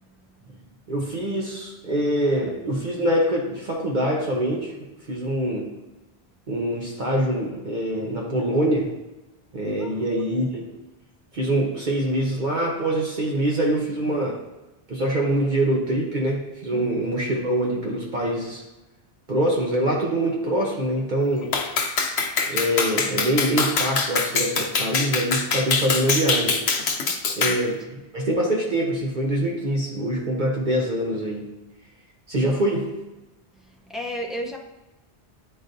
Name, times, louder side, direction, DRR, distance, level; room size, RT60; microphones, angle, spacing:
voice 1, 0.9-4.7 5.1-5.7 6.5-8.9 9.5-10.7 11.3-14.4 14.9-18.6 19.3-21.6 22.5-26.6 27.4-31.5 32.3-32.9, right 1 dB, 50° right, -2 dB, 0.9 m, -24 dB
voice 2, 9.6-10.0 16.7-16.9 32.4-32.6 33.6-34.6, equal, ahead, -1 dB, 0.4 m, -34 dB
Clapping, 21.5-27.6, left 4 dB, 85° left, 1.0 m, -24 dB
9.9 x 4.0 x 2.6 m, 1.0 s
omnidirectional pair, 1.1 m